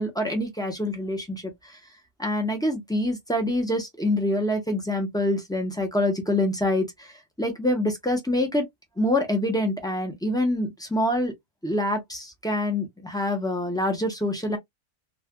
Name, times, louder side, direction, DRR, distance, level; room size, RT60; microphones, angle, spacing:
voice 1, 0.0-1.8 2.2-8.7 9.0-11.3 11.6-14.6, left 1 dB, 5° left, 0.5 m, -26 dB
3.2 x 2.4 x 2.2 m
omnidirectional pair, 1.5 m